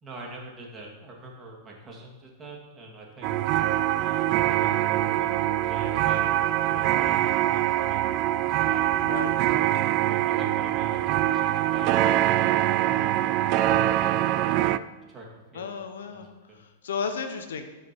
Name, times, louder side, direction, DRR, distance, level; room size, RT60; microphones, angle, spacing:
voice 1, 0.0-3.3 4.0-5.3 5.6-6.2 6.7-8.1 8.6-9.0 9.4-11.0 11.3-12.4 12.9-14.5 15.0-15.7 16.1-16.6, right 2 dB, 20° right, -2 dB, 2.5 m, -44 dB
sound 1, 3.2-14.8, right 13 dB, 45° right, 0.4 m, -24 dB
voice 2, 9.0-9.4 15.5-16.3 16.5-17.6, left 5 dB, 80° left, 7 dB, 1.0 m, -34 dB
12.5 x 5.2 x 4.5 m, 1.1 s
hypercardioid pair, 120°, 0 cm